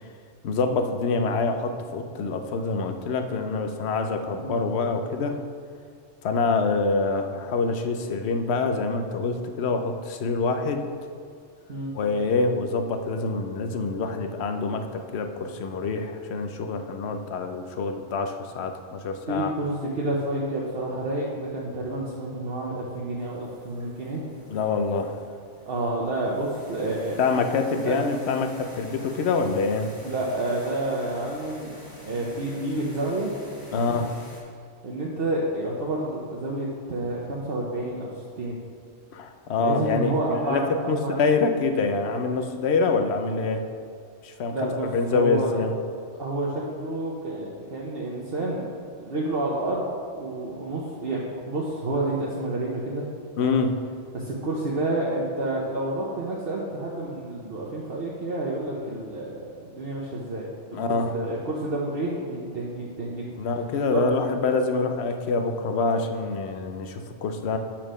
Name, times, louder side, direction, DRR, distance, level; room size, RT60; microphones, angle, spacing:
voice 1, 0.4-5.4 6.2-11.1 11.9-19.5 24.5-25.2 27.2-29.9 33.7-34.1 39.1-43.6 44.2-45.7 53.4-53.7 60.7-61.1 63.4-67.6, left 4 dB, 65° left, 6 dB, 0.9 m, -26 dB
voice 2, 19.3-24.3 25.6-27.2 27.8-28.0 30.0-31.7 32.0-33.3 33.7-34.0 34.8-38.1 38.4-38.6 39.6-41.2 44.5-45.5 46.2-48.6 49.0-53.1 53.4-53.6 54.1-60.8 61.1-63.3 63.9-64.0, right 2 dB, 55° right, -4 dB, 1.1 m, -29 dB
sound 1, 23.2-34.4, equal, 20° left, 1.6 m, -47 dB
7.1 x 4.4 x 6.3 m, 2.2 s
omnidirectional pair, 1.2 m